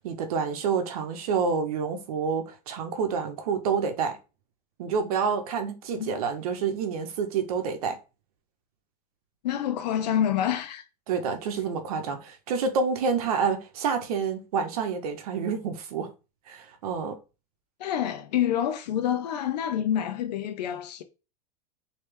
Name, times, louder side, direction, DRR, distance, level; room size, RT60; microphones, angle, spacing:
voice 1, 0.0-4.2 4.8-8.0 11.1-16.1 16.5-17.2, right 5 dB, 65° right, 0.8 m, -28 dB
voice 2, 9.4-10.8 17.8-21.0, left 10 dB, 80° left, 0.6 m, -27 dB
3.3 x 2.8 x 3.2 m
supercardioid pair, 175°, 21 cm